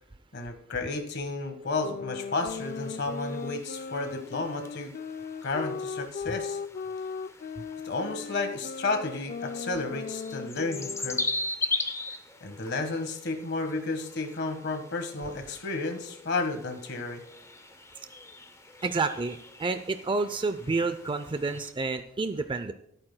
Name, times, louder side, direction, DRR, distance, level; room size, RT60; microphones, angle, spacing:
voice 1, 0.3-4.9 5.4-6.6 7.8-11.2 12.4-17.2, left 3 dB, 60° left, 6 dB, 1.4 m, -32 dB
sound 1, 1.8-11.5, left 5 dB, 45° left, 0.3 m, -38 dB
sound 2, 2.3-21.7, left 2 dB, 15° left, 0.7 m, -40 dB
voice 2, 18.8-22.7, right 3 dB, 25° right, 10 dB, 0.4 m, -29 dB
25.5 x 8.8 x 2.2 m, 0.76 s
head